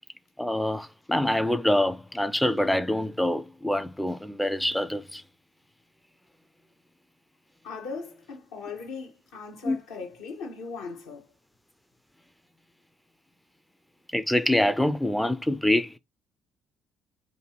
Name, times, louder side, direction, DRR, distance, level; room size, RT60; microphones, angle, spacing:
voice 1, 0.4-5.2 9.6-9.8 14.1-16.0, left 1 dB, 5° left, 0.4 m, -25 dB
voice 2, 7.6-11.3, left 4 dB, 65° left, 0.8 m, -39 dB
2.6 x 2.3 x 3.0 m
figure-of-eight pair, 50°, 0 cm